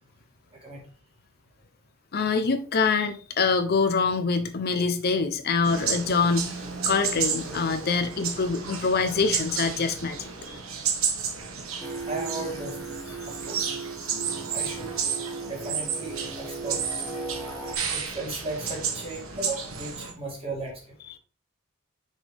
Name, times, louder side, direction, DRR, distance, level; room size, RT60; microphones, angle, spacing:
voice 1, 0.5-0.8 12.0-13.7 14.5-14.9 15.4-16.9 17.9-20.9, right 2 dB, 30° right, -2 dB, 2.5 m, -36 dB
voice 2, 2.1-6.6 6.9-10.3 14.1-14.2, left 4 dB, 50° left, 8 dB, 0.6 m, -25 dB
sound 1, 5.6-20.1, right 6 dB, 75° right, 1.3 m, -32 dB
Singing, 11.8-17.7, right 3 dB, 10° left, 0.9 m, -37 dB
6.2 x 5.3 x 3.4 m, 0.37 s
head